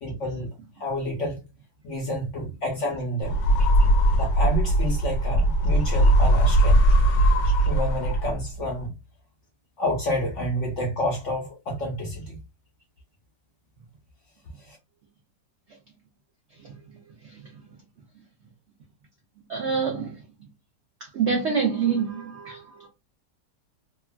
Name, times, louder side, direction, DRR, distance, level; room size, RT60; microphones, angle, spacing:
voice 1, 0.0-1.4 1.8-3.4 4.2-6.8 7.7-8.9 9.8-12.4 14.6-14.8, left 1 dB, 60° left, 0.8 m, -29 dB
sound 1, 3.2-8.5, right 1 dB, 80° left, 1.3 m, -19 dB
voice 2, 19.5-20.1 21.1-22.9, right 6 dB, 85° right, 0.6 m, -26 dB
2.9 x 2.3 x 2.3 m
omnidirectional pair, 1.9 m